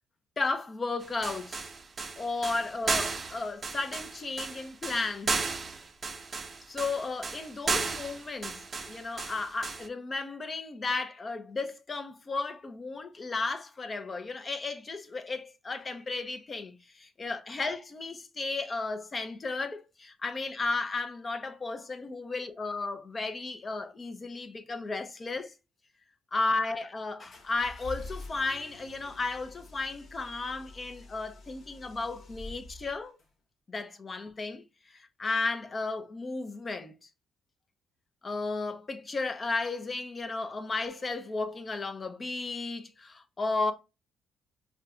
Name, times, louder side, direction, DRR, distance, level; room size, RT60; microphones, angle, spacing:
voice 1, 0.4-1.7 2.2-5.4 6.7-25.5 26.3-33.2 33.7-36.9 38.2-43.7, left 3 dB, 35° left, 0.7 m, -34 dB
sound 1, 1.0-9.9, right 4 dB, 35° right, 0.5 m, -34 dB
sound 2, 27.3-33.3, left 2 dB, 60° left, 1.6 m, -47 dB
5.1 x 2.3 x 2.5 m
cardioid pair, 90°, 0 cm